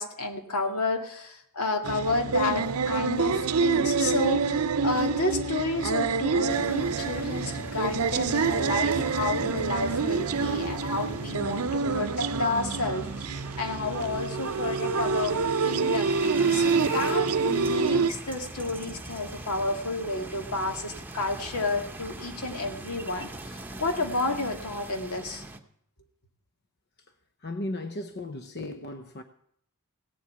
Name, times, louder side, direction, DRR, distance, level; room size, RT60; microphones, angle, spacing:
voice 1, 0.0-15.4 15.6-25.4, left 2 dB, 80° left, 2.2 m, -31 dB
sound 1, 1.8-18.1, right 5 dB, 80° right, 0.7 m, -27 dB
sound 2, 1.9-14.2, right 1 dB, 15° left, 3.3 m, -45 dB
sound 3, 6.5-25.6, right 2 dB, 10° right, 1.0 m, -41 dB
voice 2, 27.4-29.2, left 1 dB, 50° left, 0.8 m, -35 dB
17.0 x 7.9 x 8.4 m
head